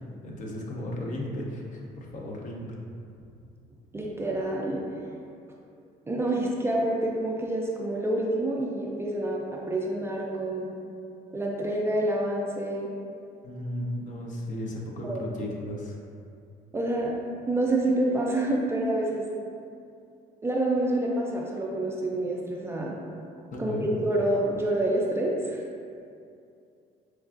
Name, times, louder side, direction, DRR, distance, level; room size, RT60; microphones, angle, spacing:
voice 1, 0.2-2.8 13.4-16.0 23.5-23.9, left 1 dB, 50° left, -1 dB, 0.6 m, -35 dB
voice 2, 3.9-4.8 6.1-10.7 11.3-12.9 15.0-15.2 16.7-17.1 17.5-19.3 20.4-23.0 23.6-25.6, right 1 dB, 15° right, -3 dB, 0.3 m, -27 dB
4.5 x 2.3 x 2.4 m, 2.5 s
cardioid pair, 110°, 17 cm